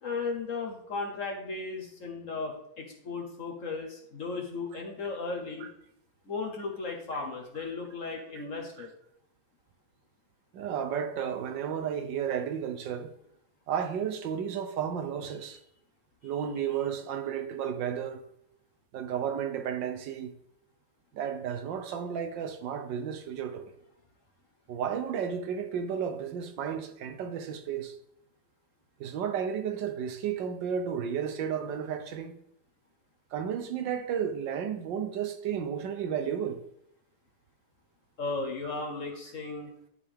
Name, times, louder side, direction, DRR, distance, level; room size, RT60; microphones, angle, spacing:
voice 1, 0.0-5.7 6.2-8.9 38.2-39.7, left 4 dB, 50° left, 1.2 m, -35 dB
voice 2, 10.5-13.1 13.7-15.6 16.2-18.2 18.9-20.3 21.1-23.7 24.7-27.9 29.0-32.3 33.3-36.6, right 8 dB, 75° right, 1.4 m, -33 dB
11.0 x 5.2 x 3.5 m
omnidirectional pair, 2.1 m